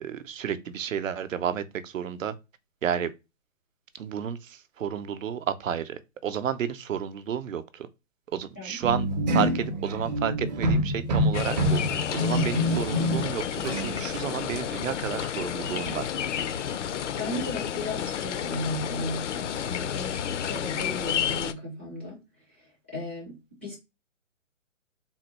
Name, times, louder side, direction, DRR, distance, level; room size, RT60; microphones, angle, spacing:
voice 1, 0.0-2.3 2.8-3.1 3.9-7.9 8.3-16.1, right 8 dB, 75° right, 0.7 m, -31 dB
sound 1, 8.8-13.4 13.6-14.0, equal, 35° right, 0.6 m, -26 dB
sound 2, 11.3-21.5, left 9 dB, 65° left, 0.5 m, -31 dB
voice 2, 17.2-22.2 22.9-23.8, left 1 dB, 10° left, 0.4 m, -35 dB
3.8 x 2.2 x 2.9 m
hypercardioid pair, 145°, 39 cm